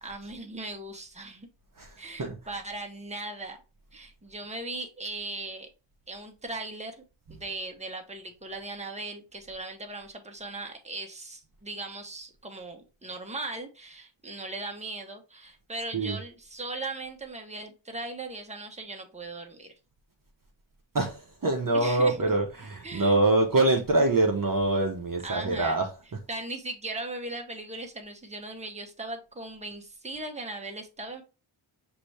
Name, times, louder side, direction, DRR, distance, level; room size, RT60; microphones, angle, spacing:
voice 1, 0.0-1.5 2.0-3.6 3.9-5.7 6.1-7.0 7.3-19.7 21.7-22.3 22.8-23.2 25.2-25.8 26.3-31.2, right 2 dB, 15° right, 1.0 m, -38 dB
voice 2, 1.8-2.6 7.3-7.4 15.9-16.2 20.9-26.2, right 2 dB, 40° right, 0.8 m, -25 dB
5.9 x 2.7 x 3.2 m
wide cardioid pair, 55°, 49 cm